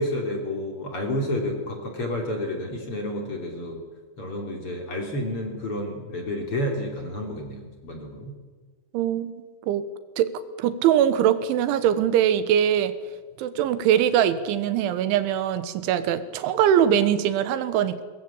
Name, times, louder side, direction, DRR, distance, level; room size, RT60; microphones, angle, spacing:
voice 1, 0.0-3.8 4.2-8.3, left 1 dB, 35° left, 3 dB, 3.4 m, -30 dB
voice 2, 8.9-9.3 9.7-9.9 10.2-10.3 10.6-13.0 13.4-18.0, right 10 dB, 90° right, 13 dB, 3.6 m, -22 dB
22.5 x 21.0 x 8.5 m, 1.4 s
omnidirectional pair, 5.4 m